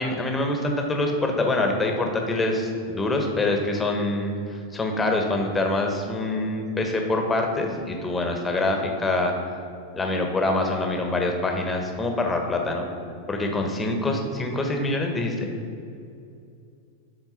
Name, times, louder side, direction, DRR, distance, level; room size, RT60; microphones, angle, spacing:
voice 1, 0.0-9.3 9.9-12.8 13.3-15.5, left 2 dB, 15° left, 2 dB, 1.3 m, -25 dB
12.5 x 4.3 x 5.8 m, 2.5 s
figure-of-eight pair, 90°, 0 cm